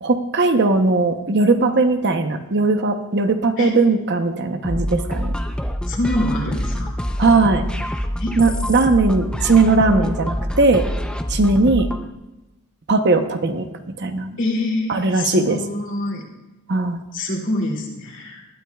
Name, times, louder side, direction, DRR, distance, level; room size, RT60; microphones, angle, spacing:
voice 1, 0.0-5.3 7.2-7.7 8.4-10.8 11.3-11.9 12.9-13.7 14.0-14.4 14.9-15.6 16.7-17.0, right 3 dB, 50° right, 7 dB, 0.8 m, -18 dB
sound 1, 4.6-12.1, equal, 5° left, 0.6 m, -26 dB
voice 2, 5.9-6.9 8.2-8.4 14.4-16.2 17.1-18.5, left 1 dB, 55° left, -1 dB, 2.5 m, -25 dB
19.5 x 12.5 x 2.3 m, 1.0 s
head